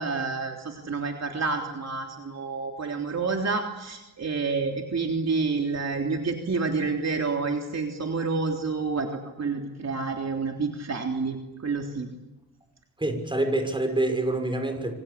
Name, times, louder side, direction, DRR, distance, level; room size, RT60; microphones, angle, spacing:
voice 1, 0.0-9.1 9.4-12.1, right 4 dB, 45° right, 2 dB, 3.5 m, -29 dB
voice 2, 13.0-14.9, right 2 dB, 15° right, 6 dB, 6.1 m, -26 dB
27.5 x 25.0 x 8.5 m, 1.0 s
cardioid pair, 100°, 36 cm